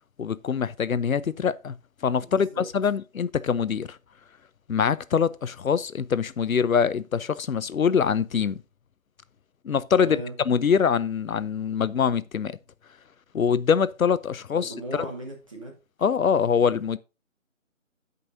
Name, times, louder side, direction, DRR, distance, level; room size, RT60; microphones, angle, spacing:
voice 1, 0.2-1.7 2.0-4.0 4.7-8.6 9.6-12.6 13.3-15.1 16.0-17.0, left 6 dB, 90° left, 0.7 m, -24 dB
voice 2, 2.2-2.6 10.0-10.3 14.5-15.7, right 1 dB, 25° right, 1.5 m, -37 dB
15.5 x 5.4 x 2.7 m
figure-of-eight pair, 170°, 40 cm